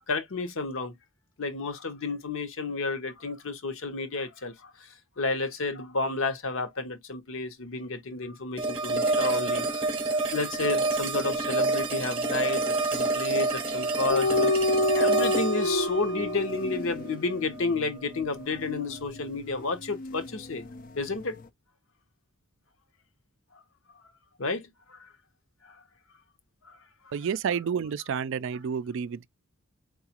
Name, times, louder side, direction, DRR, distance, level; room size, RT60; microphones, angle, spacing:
voice 1, 0.1-0.9 1.4-4.9 5.2-9.9 10.3-20.6 21.0-21.4 24.4-25.1 25.7-25.8 26.6-26.8, left 3 dB, 60° left, 0.8 m, -31 dB
sound 1, 8.6-17.6, right 3 dB, 25° right, 0.8 m, -28 dB
sound 2, 14.1-20.9 21.1-21.4, left 2 dB, 40° left, 0.4 m, -29 dB
voice 2, 27.1-29.3, right 7 dB, 60° right, 0.3 m, -30 dB
4.7 x 2.2 x 2.9 m
head